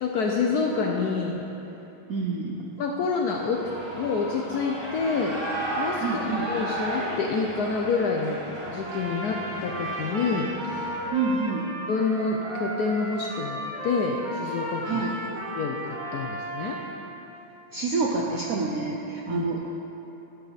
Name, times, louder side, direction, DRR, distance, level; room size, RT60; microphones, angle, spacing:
voice 1, 0.0-1.4 2.8-3.7 3.9-5.4 5.8-8.4 8.7-10.9 11.9-15.0 15.5-16.8 19.3-19.4, left 4 dB, 75° left, 0 dB, 0.9 m, -27 dB
voice 2, 2.1-2.6 6.0-6.5 11.1-11.7 14.8-15.2 17.7-19.6, right 4 dB, 75° right, -2 dB, 0.8 m, -27 dB
Shout / Cheering, 3.4-11.1, right 1 dB, 15° right, 0.9 m, -34 dB
Trumpet, 8.6-17.0, right 1 dB, 40° right, 0.7 m, -35 dB
11.0 x 7.9 x 4.1 m, 3.0 s
omnidirectional pair, 2.3 m